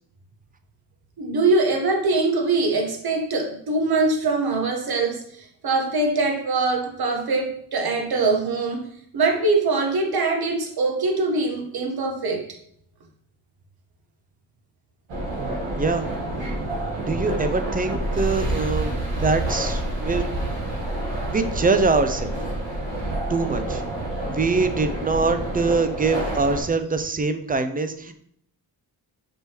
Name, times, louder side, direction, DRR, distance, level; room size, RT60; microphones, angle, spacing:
voice 1, 1.2-8.8 9.1-12.4, right 3 dB, 55° right, 2 dB, 1.2 m, -23 dB
sound 1, 15.1-26.6, right 1 dB, 80° right, 1.5 m, -28 dB
voice 2, 15.8-16.1 17.1-20.3 21.3-22.3 23.3-23.8 24.3-28.1, right 3 dB, 20° right, 9 dB, 0.5 m, -23 dB
5.2 x 3.0 x 2.9 m, 0.66 s
supercardioid pair, 45°, 44 cm